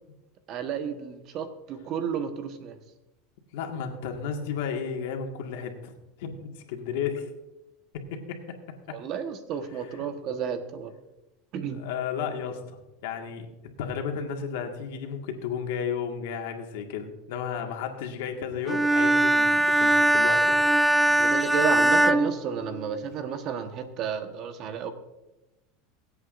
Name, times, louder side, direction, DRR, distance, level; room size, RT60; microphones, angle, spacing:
voice 1, 0.5-2.8 8.9-10.9 11.5-11.8 21.2-24.9, right 7 dB, 45° right, 8 dB, 1.2 m, -32 dB
voice 2, 3.5-5.9 6.2-7.3 7.9-8.4 11.6-13.4 13.8-20.6, left 7 dB, 80° left, 3 dB, 1.8 m, -33 dB
Bowed string instrument, 18.7-23.2, right 1 dB, ahead, 0.3 m, -21 dB
23.5 x 8.2 x 2.6 m, 0.98 s
supercardioid pair, 130°, 0 cm